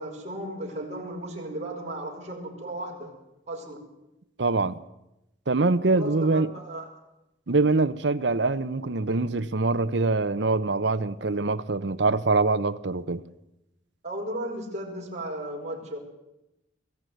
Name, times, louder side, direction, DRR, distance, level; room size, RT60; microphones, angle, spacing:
voice 1, 0.0-3.1 3.5-3.8 5.9-6.9 14.0-16.0, right 1 dB, 35° right, 5.6 m, -35 dB
voice 2, 4.4-4.8 5.5-6.5 7.5-13.2, right 3 dB, 70° right, 0.9 m, -24 dB
22.0 x 15.5 x 9.3 m
head